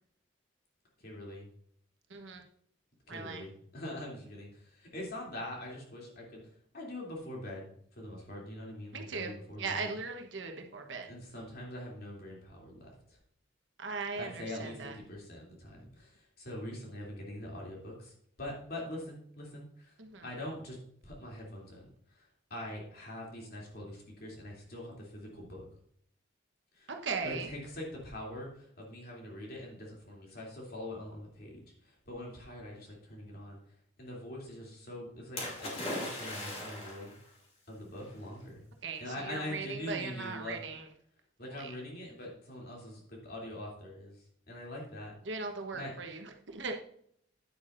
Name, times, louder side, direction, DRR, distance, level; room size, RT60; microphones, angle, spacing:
voice 1, 1.0-1.5 3.1-6.4 6.7-7.7 8.0-9.9 11.1-13.2 14.1-19.9 20.2-20.8 21.0-25.6 26.7-26.9 27.2-31.6 31.8-33.6 34.0-37.1 37.7-38.6 39.0-40.6 41.4-44.2 44.5-45.1 45.7-45.9, left 1 dB, 55° left, -2 dB, 3.0 m, -43 dB
voice 2, 2.1-2.4 3.1-3.4 8.9-11.1 13.8-15.0 20.0-20.3 26.9-27.5 38.8-40.9 41.6-41.7 45.3-46.7, right 4 dB, 75° right, 4 dB, 1.1 m, -39 dB
Splash splatter, 35.4-37.2 38.1-38.2, left 1 dB, 35° left, 2.6 m, -38 dB
9.6 x 8.4 x 2.6 m, 0.67 s
head